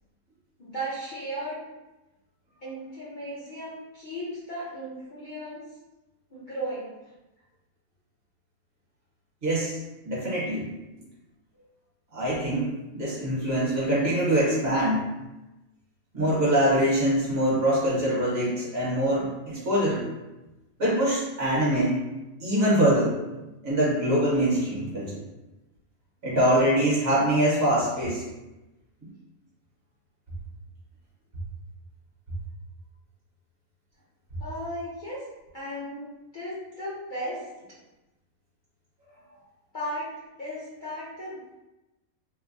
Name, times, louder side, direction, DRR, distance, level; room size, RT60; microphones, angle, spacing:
voice 1, 0.6-1.6 2.6-5.6 6.3-6.9 34.4-35.2 35.5-37.8 39.7-41.4, equal, 45° left, -11 dB, 0.7 m, -36 dB
voice 2, 9.4-9.8 10.0-10.7 12.1-15.1 16.1-20.1 20.8-22.0 22.4-23.1 23.6-25.2 26.2-28.2, right 1 dB, 50° right, -7 dB, 1.1 m, -24 dB
3.2 x 2.1 x 2.5 m, 1.0 s
omnidirectional pair, 1.5 m